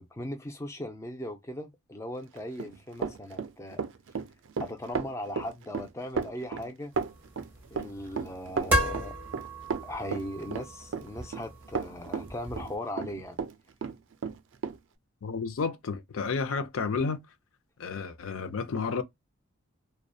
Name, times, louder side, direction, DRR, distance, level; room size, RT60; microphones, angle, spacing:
voice 1, 0.0-3.8 4.6-6.9 7.7-9.2 9.8-13.4, left 1 dB, 15° left, 0.4 m, -38 dB
Run, 2.4-13.5 13.8-14.8, right 5 dB, 55° right, 0.3 m, -34 dB
sound 1, 6.9-12.8, equal, 10° right, 1.0 m, -34 dB
voice 2, 15.2-17.2 17.8-19.0, left 5 dB, 70° left, 0.5 m, -31 dB
2.6 x 2.1 x 2.3 m
head